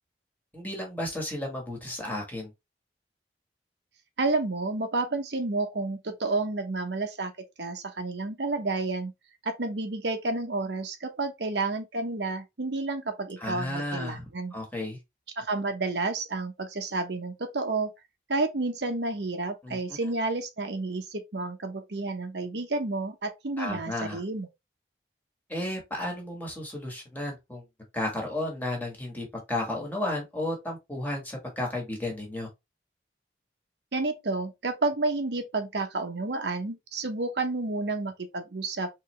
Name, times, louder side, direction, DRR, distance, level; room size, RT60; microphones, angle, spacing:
voice 1, 0.5-2.5 13.4-14.2 14.5-15.0 19.6-20.1 23.6-24.2 25.5-27.6 27.9-32.5, left 1 dB, 10° left, 1.4 m, -33 dB
voice 2, 4.2-7.3 7.6-9.1 9.4-14.5 15.4-17.9 18.3-24.5 33.9-39.0, right 3 dB, 75° right, 0.9 m, -30 dB
3.9 x 3.2 x 3.1 m
head